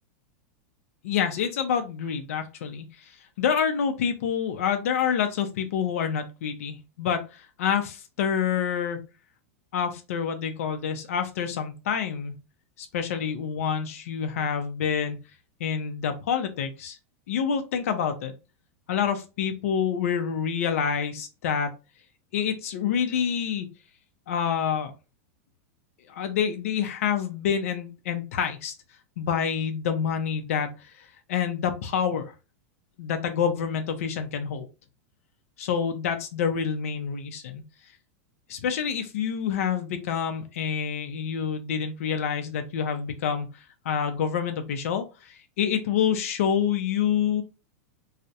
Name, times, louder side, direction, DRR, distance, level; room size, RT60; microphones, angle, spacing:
voice 1, 1.0-3.1 3.4-9.0 9.7-12.3 12.8-15.2 15.6-17.0 17.3-18.3 18.9-21.7 22.3-23.7 24.3-24.9 26.1-28.7 29.2-30.9 31.3-32.3 33.0-34.7 35.6-37.6 38.5-43.5 43.9-47.4, left 7 dB, 75° left, 6 dB, 0.5 m, -27 dB
2.3 x 2.0 x 2.7 m, 0.29 s
supercardioid pair, 160°, 8 cm